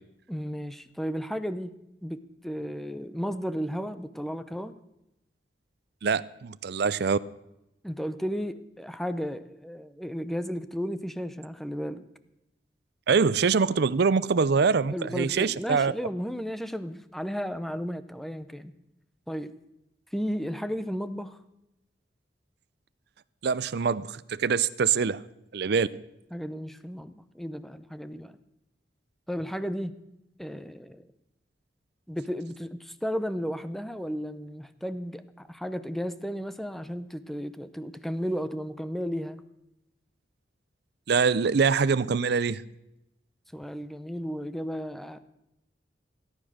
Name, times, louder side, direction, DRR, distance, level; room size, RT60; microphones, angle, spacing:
voice 1, 0.3-1.7 2.0-4.7 7.8-12.0 14.9-18.7 19.3-19.5 20.1-21.4 26.3-28.4 29.3-29.9 30.4-31.1 32.1-39.4 43.5-45.2, equal, ahead, 0.7 m, -34 dB
voice 2, 6.0-7.2 13.1-15.9 23.4-25.2 25.5-25.9 41.1-42.6, right 5 dB, 65° right, 0.5 m, -24 dB
17.0 x 9.8 x 6.4 m
head